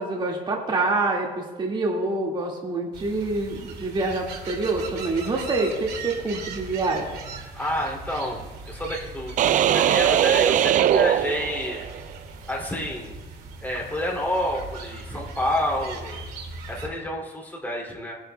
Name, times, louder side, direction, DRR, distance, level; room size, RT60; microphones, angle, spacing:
voice 1, 0.0-7.2, right 2 dB, 30° right, -2 dB, 2.0 m, -26 dB
sound 1, 2.9-16.9, right 3 dB, 70° right, 2.4 m, -39 dB
voice 2, 7.5-11.9 12.5-13.1 13.6-16.2 16.7-18.2, left 1 dB, 10° left, -2 dB, 2.7 m, -29 dB
sound 2, 9.4-12.0, right 10 dB, 50° right, 0.4 m, -20 dB
19.5 x 10.5 x 2.3 m, 1.3 s
cardioid pair, 110°, 17 cm